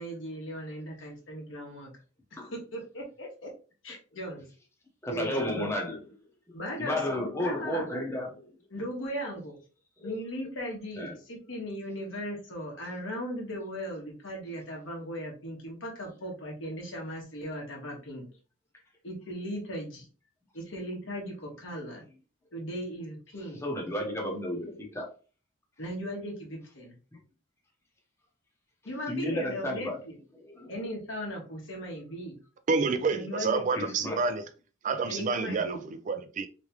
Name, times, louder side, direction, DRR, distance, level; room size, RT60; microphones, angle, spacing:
voice 1, 0.0-1.9 2.5-3.5 3.8-4.5 5.1-5.7 6.5-7.9 8.7-9.6 10.0-18.2 19.0-20.1 20.5-22.0 22.5-23.6 25.8-27.0 28.8-30.1 30.7-32.4 33.0-33.6 35.1-35.8, equal, 70° left, 1.4 m, -37 dB
voice 2, 5.0-6.0 6.8-8.5 10.0-10.1 11.0-11.1 23.6-25.1 29.1-30.0 30.4-30.7 33.7-34.3, left 1 dB, 15° left, 0.9 m, -32 dB
voice 3, 32.7-34.4 34.8-36.5, right 4 dB, 40° right, 0.3 m, -28 dB
3.5 x 3.2 x 3.0 m
head